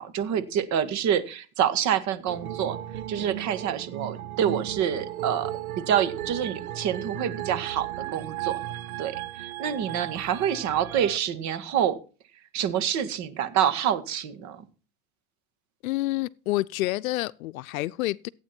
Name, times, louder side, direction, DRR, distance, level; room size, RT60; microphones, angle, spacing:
voice 1, 0.0-2.8 3.1-8.6 9.0-12.0 12.5-14.7, right 9 dB, 40° right, 1.9 m, -27 dB
sound 1, 2.3-11.2, right 13 dB, 80° right, 1.3 m, -35 dB
voice 2, 15.8-18.3, left 18 dB, 70° left, 0.7 m, -28 dB
16.0 x 9.0 x 4.4 m
supercardioid pair, 125°, 43 cm